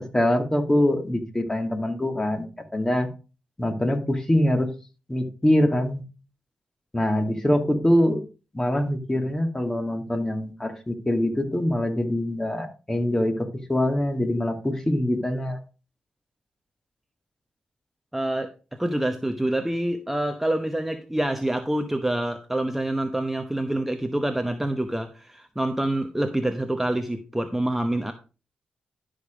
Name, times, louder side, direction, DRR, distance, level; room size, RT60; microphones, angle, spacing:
voice 1, 0.0-2.5 2.7-3.1 3.6-4.7 5.1-6.0 6.9-8.2 8.5-15.6, left 1 dB, 15° left, 2.3 m, -24 dB
voice 2, 18.1-28.1, right 1 dB, 5° right, 0.9 m, -26 dB
12.0 x 5.1 x 5.1 m
cardioid pair, 70°, 3 cm